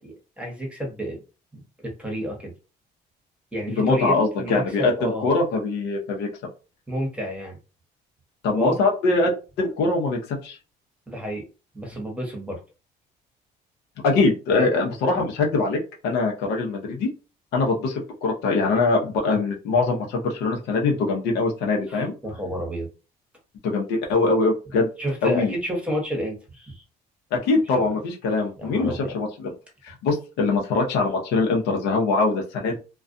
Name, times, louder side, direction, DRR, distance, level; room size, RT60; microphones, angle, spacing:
voice 1, 0.0-1.2 1.5-2.5 3.5-5.3 6.9-7.6 8.6-8.8 11.1-11.4 11.7-12.6 14.5-14.7 21.9-22.9 25.0-26.8 27.7-27.9 28.6-29.1, equal, 5° right, 1 dB, 0.9 m, -30 dB
voice 2, 3.8-6.3 8.4-9.3 9.6-10.6 14.0-17.1 17.5-22.1 23.6-24.9 25.2-25.5 27.3-29.5 29.8-32.8, left 3 dB, 85° left, 1 dB, 0.7 m, -23 dB
2.3 x 2.2 x 2.5 m, 0.32 s
cardioid pair, 110°, 17 cm